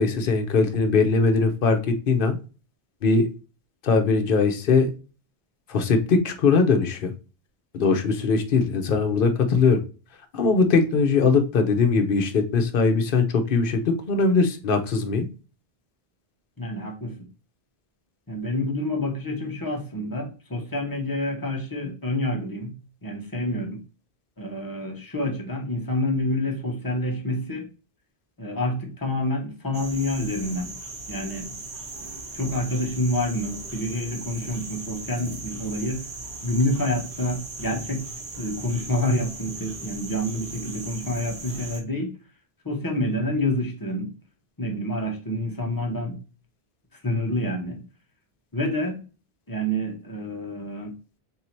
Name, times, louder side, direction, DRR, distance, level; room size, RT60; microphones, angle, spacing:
voice 1, 0.0-2.4 3.0-3.3 3.8-4.9 5.7-7.1 7.7-9.8 10.3-15.3, left 4 dB, 60° left, 6 dB, 0.8 m, -21 dB
voice 2, 16.6-17.1 18.3-22.7 23.0-23.8 24.4-27.7 28.4-30.7 31.1-31.5 32.3-36.0 36.4-38.0 38.4-42.1 42.6-44.1 44.6-46.2 47.0-47.8 48.5-49.0 49.5-50.9, left 1 dB, 20° left, 2 dB, 0.8 m, -28 dB
sound 1, 29.7-41.8, right 3 dB, 60° right, 1.1 m, -38 dB
3.7 x 2.7 x 4.3 m, 0.34 s
omnidirectional pair, 1.1 m